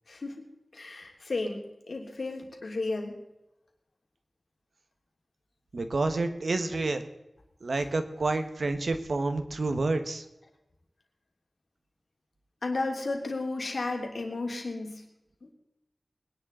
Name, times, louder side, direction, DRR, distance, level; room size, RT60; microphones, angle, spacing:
voice 1, 0.1-0.4 0.7-1.6 1.9-3.1 12.6-15.0, left 3 dB, 75° left, 1 dB, 3.0 m, -33 dB
voice 2, 5.7-7.0 7.6-10.2, right 3 dB, 80° right, 8 dB, 1.3 m, -29 dB
21.5 x 10.5 x 3.9 m, 0.91 s
wide cardioid pair, 55°, 0 cm